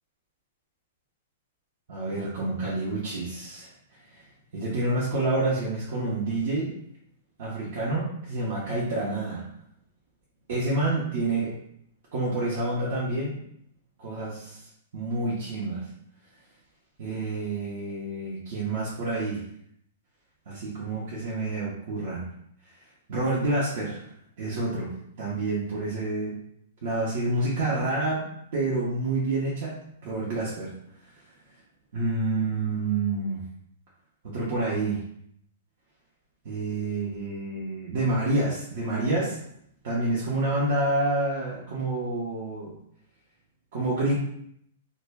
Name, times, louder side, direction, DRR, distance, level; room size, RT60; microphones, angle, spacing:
voice 1, 1.9-3.7 4.1-4.2 4.5-6.7 7.4-9.4 10.5-11.5 12.1-13.4 14.0-14.6 14.9-15.9 17.0-19.4 20.5-22.3 23.1-24.0 24.4-24.9 25.2-26.4 26.8-28.2 28.5-29.7 30.0-30.7 31.9-33.4 34.2-35.0 36.4-39.4 39.8-42.7 43.7-44.1, right 2 dB, 60° right, -6 dB, 0.7 m, -28 dB
2.1 x 2.0 x 3.3 m, 0.70 s
hypercardioid pair, 125°, 0 cm